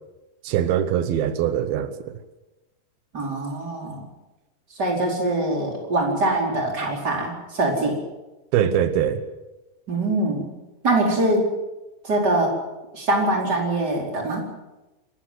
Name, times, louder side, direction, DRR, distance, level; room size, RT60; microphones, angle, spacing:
voice 1, 0.4-2.1 8.5-9.2, right 9 dB, 90° right, 3.0 m, -22 dB
voice 2, 3.1-4.0 4.8-8.0 9.9-10.5 10.8-11.5 12.0-12.5 12.9-14.5, right 2 dB, 25° right, 4.9 m, -23 dB
27.0 x 15.0 x 7.7 m
omnidirectional pair, 4.2 m